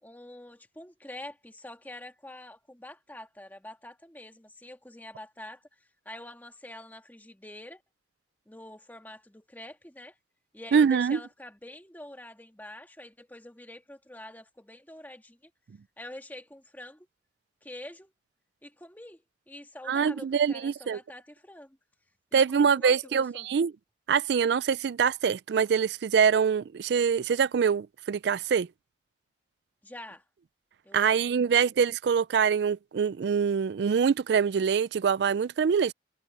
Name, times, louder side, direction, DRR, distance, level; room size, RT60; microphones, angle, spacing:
voice 1, 0.0-5.7 6.0-7.8 8.5-10.2 10.5-15.5 16.0-17.1 17.6-18.1 18.6-21.8 22.3-23.5 29.8-30.2 30.8-31.2, left 1 dB, 10° left, 1.7 m, -46 dB
voice 2, 10.7-11.2 19.9-21.0 22.3-23.7 24.1-28.7 30.9-35.9, right 6 dB, 60° right, 0.3 m, -24 dB
head